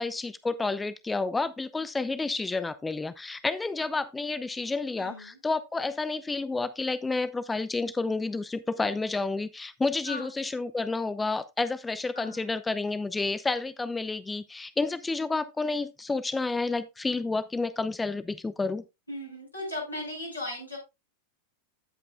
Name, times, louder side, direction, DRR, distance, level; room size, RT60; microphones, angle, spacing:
voice 1, 0.0-18.8, left 3 dB, 10° left, 0.4 m, -30 dB
voice 2, 5.0-5.4 10.1-10.3 12.1-12.5 19.1-20.8, left 1 dB, 80° left, 6.0 m, -37 dB
15.5 x 5.3 x 2.3 m
figure-of-eight pair, 90°, 0 cm